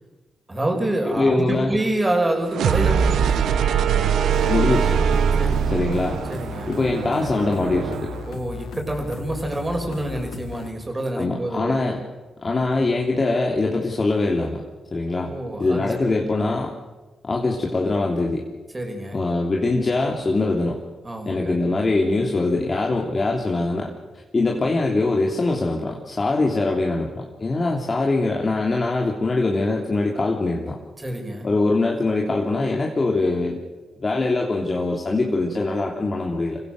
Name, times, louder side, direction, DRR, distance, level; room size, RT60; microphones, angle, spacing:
voice 1, 0.5-3.6 5.4-5.8 6.3-6.7 8.3-11.8 15.2-16.2 18.7-19.2 21.0-21.6 31.0-31.5, right 1 dB, 25° right, 2 dB, 6.1 m, -27 dB
voice 2, 1.1-1.7 4.5-5.0 5.7-6.2 6.7-8.1 11.2-12.0 12.4-14.6 14.9-15.3 15.6-16.7 17.2-18.4 19.1-20.8 21.2-23.9 24.3-30.8 31.4-33.6 34.0-36.6, left 2 dB, 40° left, -1 dB, 3.1 m, -22 dB
sound 1, 2.5-8.3, right 7 dB, 75° right, 1.0 m, -22 dB
sound 2, 4.3-10.7, left 6 dB, 80° left, 1.6 m, -37 dB
25.5 x 16.0 x 6.8 m, 1.2 s
supercardioid pair, 45°, 0 cm